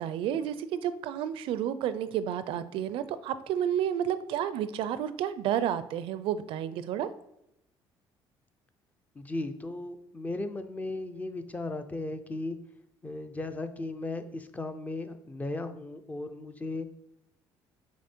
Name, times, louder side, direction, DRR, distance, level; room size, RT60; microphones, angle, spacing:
voice 1, 0.0-7.1, right 10 dB, 75° right, 14 dB, 0.4 m, -31 dB
voice 2, 9.2-12.6 13.0-16.9, left 2 dB, 15° left, 9 dB, 0.5 m, -36 dB
6.2 x 3.7 x 4.4 m, 0.82 s
cardioid pair, 120°, 9 cm